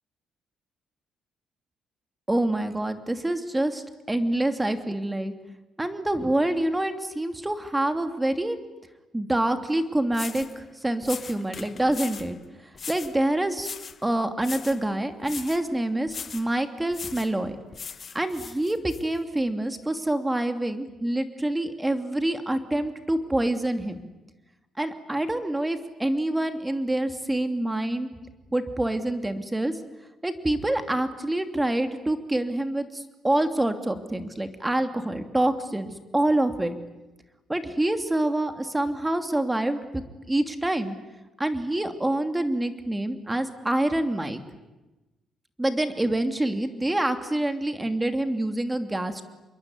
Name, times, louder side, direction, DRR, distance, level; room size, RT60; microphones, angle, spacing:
voice 1, 2.3-5.3 5.8-8.6 9.1-12.4 12.9-13.7 14.0-17.6 18.1-24.0 24.8-28.1 28.5-29.7 30.2-36.7 37.5-40.0 40.3-40.9 41.4-44.4 45.6-49.2, right 1 dB, 10° right, 8 dB, 2.8 m, -26 dB
sound 1, 9.7-9.8 10.1-10.6 11.0-12.3 12.8-13.2 13.6-14.0 14.4-14.8 15.2-15.6 16.1-16.5 16.9-17.3 17.7-19.0, left 6 dB, 45° left, 1.2 m, -39 dB
27.0 x 22.5 x 9.7 m, 1.0 s
cardioid pair, 90°, 0 cm